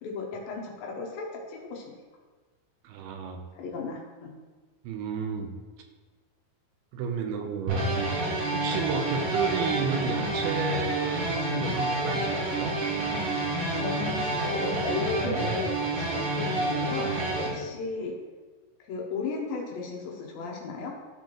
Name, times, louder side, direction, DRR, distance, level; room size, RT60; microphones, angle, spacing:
voice 1, 0.0-1.9 3.5-4.3 13.4-18.2 18.9-21.0, left 4 dB, 75° left, 0 dB, 2.3 m, -35 dB
voice 2, 2.8-3.4 4.8-5.6 6.9-8.2 8.5-12.7, right 6 dB, 80° right, 4 dB, 2.5 m, -32 dB
sound 1, 7.7-17.5, right 2 dB, 60° right, 3.0 m, -28 dB
13.0 x 4.5 x 3.0 m, 1.3 s
omnidirectional pair, 4.6 m